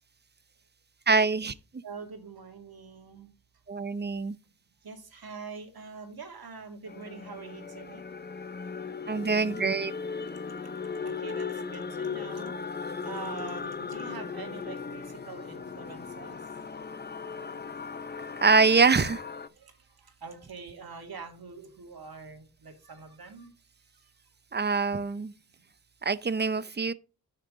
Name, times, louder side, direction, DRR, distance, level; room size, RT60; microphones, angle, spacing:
voice 1, 1.1-1.5 3.7-4.3 9.1-9.9 18.4-19.2 24.5-25.3 26.0-26.9, right 4 dB, 25° right, 0.6 m, -24 dB
voice 2, 1.8-3.3 4.8-8.0 11.0-12.6 13.0-16.4 19.5-19.7 20.0-23.5, right 5 dB, 65° right, 2.3 m, -44 dB
sound 1, 6.9-19.5, left 5 dB, 25° left, 0.6 m, -37 dB
10.0 x 6.5 x 3.7 m
wide cardioid pair, 75°, 39 cm